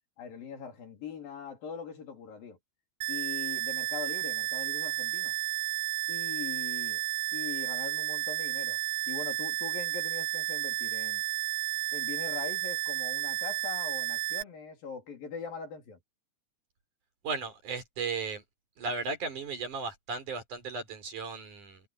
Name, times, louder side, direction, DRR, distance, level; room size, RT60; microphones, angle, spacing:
voice 1, 0.2-2.6 3.1-5.4 6.1-7.0 7.3-8.8 9.1-11.2 11.9-16.0, left 6 dB, 80° left, 5.6 m, -41 dB
sound 1, 3.0-14.4, right 19 dB, 85° right, 2.4 m, -32 dB
voice 2, 17.2-18.4 18.8-21.8, right 4 dB, 60° right, 5.6 m, -35 dB
omnidirectional pair, 4.0 m